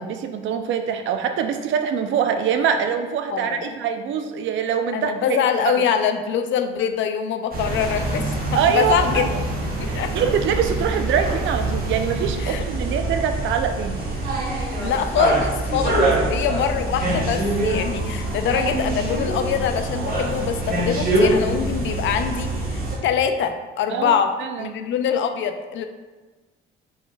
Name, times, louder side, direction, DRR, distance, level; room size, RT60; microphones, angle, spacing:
voice 1, 0.0-5.4 5.7-5.8 8.5-9.3 9.9-14.0 16.0-16.3 23.9-24.7, right 7 dB, 75° right, 6 dB, 0.4 m, -24 dB
voice 2, 3.3-3.7 4.9-8.4 8.7-9.3 9.9-10.1 12.4-12.6 14.8-24.3 24.6-25.8, left 8 dB, 70° left, 7 dB, 0.4 m, -24 dB
sound 1, 7.5-23.0, right 1 dB, 50° right, 1.0 m, -24 dB
4.4 x 3.2 x 2.3 m, 1.3 s
cardioid pair, 90°, 20 cm